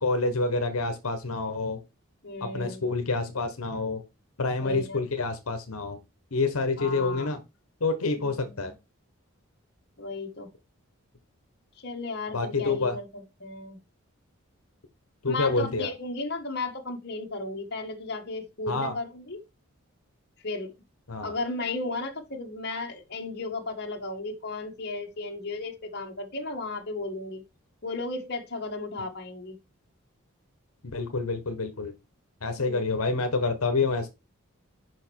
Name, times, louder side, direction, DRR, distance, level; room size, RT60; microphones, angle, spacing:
voice 1, 0.0-1.8 2.4-4.0 4.4-6.0 6.3-7.4 7.8-8.7 12.3-13.0 15.2-15.9 18.7-18.9 21.1-21.3 30.9-31.9 32.4-34.1, left 3 dB, 75° left, 1.1 m, -27 dB
voice 2, 2.2-2.9 4.6-5.0 6.8-7.3 8.1-8.8 10.0-10.5 11.8-13.8 15.2-19.4 20.4-20.7 21.2-27.4 27.8-29.6 32.6-33.1, left 2 dB, 45° left, 1.4 m, -35 dB
6.3 x 5.4 x 4.5 m
head